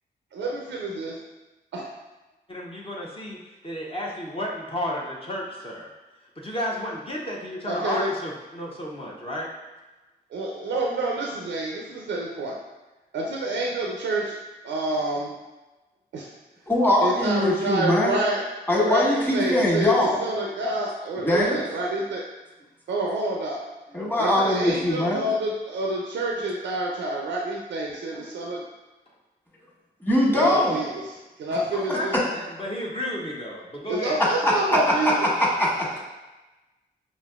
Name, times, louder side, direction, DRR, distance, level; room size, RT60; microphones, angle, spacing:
voice 1, 0.3-1.2 1.7-1.8 7.7-8.1 10.3-12.6 13.1-14.3 14.6-15.3 16.1-16.3 17.0-18.4 18.7-22.2 22.9-23.6 24.2-28.6 30.3-32.2 33.9-35.3, right 2 dB, 85° right, -1 dB, 0.4 m, -28 dB
voice 2, 2.5-3.4 3.6-5.9 6.4-9.5 28.1-28.4 31.7-34.2 35.4-35.5, left 1 dB, 30° left, -3 dB, 0.7 m, -32 dB
voice 3, 16.7-18.2 18.7-20.2 21.2-21.6 23.9-25.2 30.0-30.8 31.9-32.0 34.4-35.1 35.4-35.7, left 1 dB, 10° left, -4 dB, 1.3 m, -21 dB
5.0 x 2.6 x 2.4 m, 1.1 s
cardioid pair, 45°, 19 cm